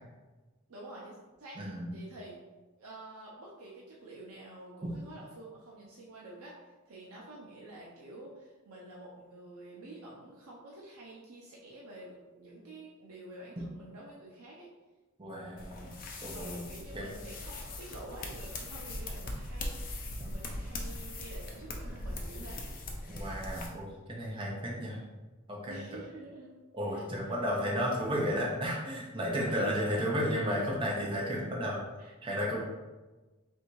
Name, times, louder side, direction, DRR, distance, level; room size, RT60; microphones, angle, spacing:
voice 1, 0.7-1.6 1.9-2.4 2.8-6.6 6.9-14.7 16.3-22.6 25.7-26.5 26.9-27.1 29.4-30.7 32.0-32.1, right 2 dB, 90° right, -4 dB, 0.7 m, -48 dB
voice 2, 1.6-1.9 15.2-15.9 16.2-16.6 16.9-17.1 23.1-25.1 25.5-26.0 26.7-31.8 32.2-32.6, equal, 25° right, -3 dB, 0.7 m, -33 dB
sound 1, 15.6-23.7, left 1 dB, 40° left, 0.6 m, -40 dB
3.4 x 2.7 x 4.5 m, 1.2 s
head